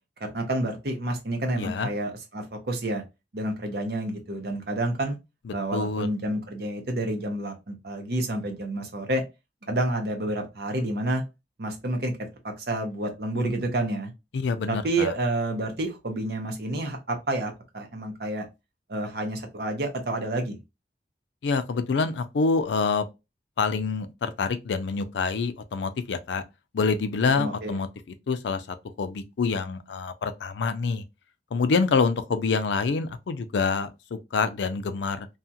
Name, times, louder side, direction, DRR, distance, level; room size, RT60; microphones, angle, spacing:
voice 1, 0.2-3.0 3.3-5.2 5.5-9.2 9.7-11.2 11.6-12.2 12.6-14.1 14.7-18.5 18.9-20.6 27.4-27.8, right 1 dB, 60° right, 0.8 m, -29 dB
voice 2, 1.6-1.9 5.7-6.1 14.3-15.1 21.4-23.1 23.6-26.4 26.7-27.9 28.3-31.0 31.5-35.3, left 4 dB, 85° left, 0.4 m, -26 dB
2.7 x 2.3 x 2.7 m
head